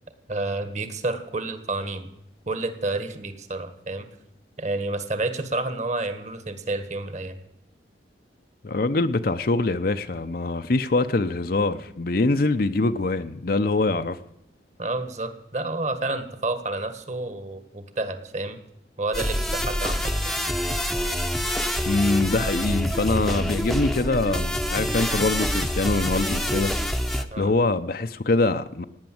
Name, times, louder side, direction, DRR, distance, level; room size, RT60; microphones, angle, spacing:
voice 1, 0.3-2.1 2.4-4.1 4.6-7.4 14.8-18.6 19.0-20.3 27.3-27.5, right 2 dB, 40° right, 1.7 m, -29 dB
voice 2, 8.6-14.2 21.8-26.7 27.1-28.8, left 2 dB, 50° left, 0.7 m, -24 dB
sound 1, 19.1-27.3, equal, ahead, 0.8 m, -26 dB
17.5 x 9.6 x 7.8 m
head